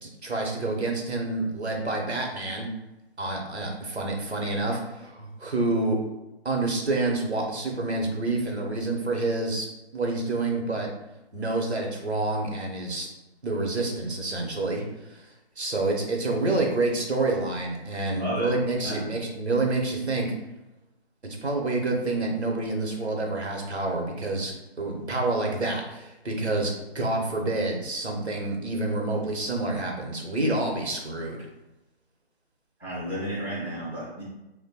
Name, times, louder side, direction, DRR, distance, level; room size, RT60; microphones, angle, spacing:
voice 1, 0.0-2.7 3.2-6.0 6.4-9.7 9.9-10.9 11.3-13.1 13.4-15.3 15.6-20.3 21.4-31.5, right 2 dB, 85° right, 1 dB, 0.9 m, -28 dB
voice 2, 18.1-19.1 32.8-34.2, equal, 10° left, -12 dB, 0.4 m, -33 dB
3.0 x 2.1 x 2.8 m, 0.98 s
figure-of-eight pair, 145°, 32 cm